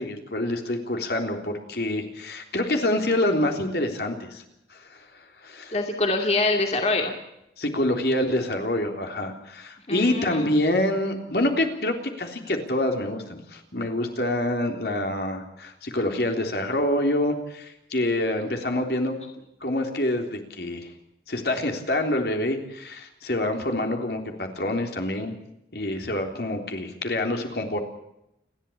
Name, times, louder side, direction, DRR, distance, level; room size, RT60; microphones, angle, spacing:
voice 1, 0.0-4.4 5.4-5.8 7.6-19.2 19.6-20.9 21.3-25.3 25.7-27.8, left 1 dB, 65° left, 4 dB, 3.5 m, -26 dB
voice 2, 5.7-7.1 9.9-10.5, left 2 dB, 35° left, 3 dB, 2.4 m, -24 dB
29.5 x 12.0 x 8.7 m, 0.83 s
head